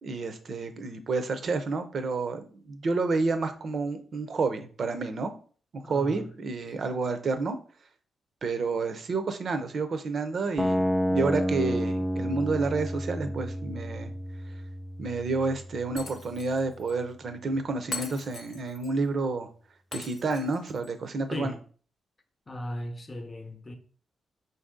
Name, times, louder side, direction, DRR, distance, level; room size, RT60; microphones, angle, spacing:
voice 1, 0.0-5.3 5.7-7.6 8.4-10.8 11.1-14.1 15.0-19.5 19.9-21.6, right 3 dB, 55° right, 0.6 m, -30 dB
voice 2, 5.8-6.3 21.3-21.6 22.5-23.8, left 1 dB, 25° left, 0.7 m, -37 dB
sound 1, 10.6-16.6, equal, ahead, 0.4 m, -30 dB
Shatter, 16.0-16.6 16.9-17.0 17.9-18.9 19.9-20.9, left 4 dB, 65° left, 0.7 m, -40 dB
4.2 x 2.7 x 3.6 m
cardioid pair, 75°, 0 cm